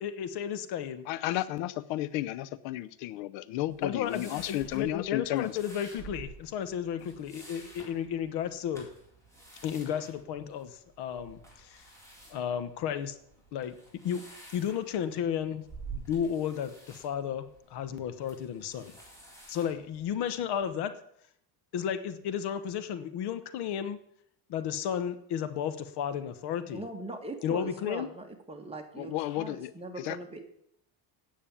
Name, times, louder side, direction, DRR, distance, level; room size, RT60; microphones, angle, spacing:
voice 1, 0.0-1.0 3.8-8.9 9.6-11.8 12.3-13.1 13.5-13.8 14.0-14.3 14.5-15.6 15.9-19.0 19.5-20.9 21.7-24.0 24.5-26.8 27.4-28.1, left 8 dB, 60° left, 12 dB, 1.1 m, -33 dB
voice 2, 1.1-5.6 29.0-29.7 30.0-30.2, left 15 dB, 75° left, 17 dB, 0.7 m, -33 dB
sound 1, 3.7-20.6, right 4 dB, 5° left, 4.2 m, -50 dB
voice 3, 26.7-30.4, right 2 dB, 15° right, 3 dB, 1.8 m, -41 dB
9.2 x 7.3 x 8.6 m, 0.72 s
cardioid pair, 135°, 46 cm